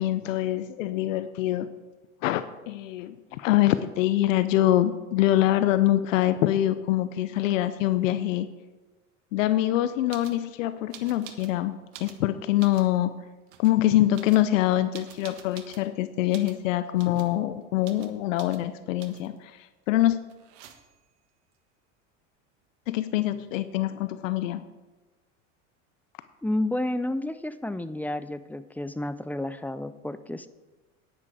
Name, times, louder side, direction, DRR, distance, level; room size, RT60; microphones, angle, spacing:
voice 1, 0.0-1.7 2.2-8.5 9.3-13.1 13.6-20.2 22.9-24.6, left 14 dB, 80° left, 13 dB, 0.7 m, -24 dB
sound 1, 10.1-10.4 10.9-11.6 11.9-12.9 13.5-13.8 14.1-15.9 16.3-16.6 17.0-17.3 17.8-18.1 18.4-18.6 19.0-19.4 20.3-21.1 22.9-23.0 23.1-23.7, right 10 dB, 65° right, 1.5 m, -48 dB
voice 2, 26.4-30.5, left 1 dB, 5° left, 13 dB, 0.5 m, -31 dB
10.5 x 10.0 x 4.8 m, 1.2 s
hypercardioid pair, 90°, 38 cm